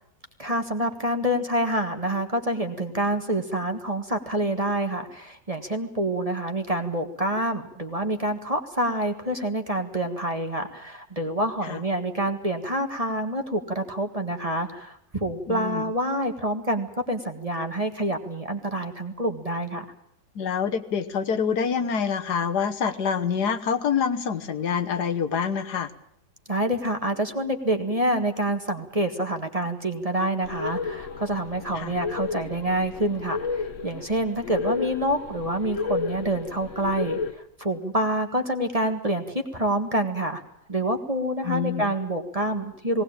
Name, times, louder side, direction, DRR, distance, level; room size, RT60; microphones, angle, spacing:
voice 1, 0.4-19.9 26.5-40.4 40.7-43.0, right 1 dB, 20° right, 5 dB, 1.6 m, -27 dB
voice 2, 15.5-15.9 20.3-25.9 31.7-31.9 41.4-41.9, left 6 dB, 70° left, 8 dB, 1.7 m, -26 dB
sound 1, 30.4-37.3, left 4 dB, 50° left, 1.3 m, -32 dB
19.0 x 19.0 x 8.8 m, 0.71 s
omnidirectional pair, 1.8 m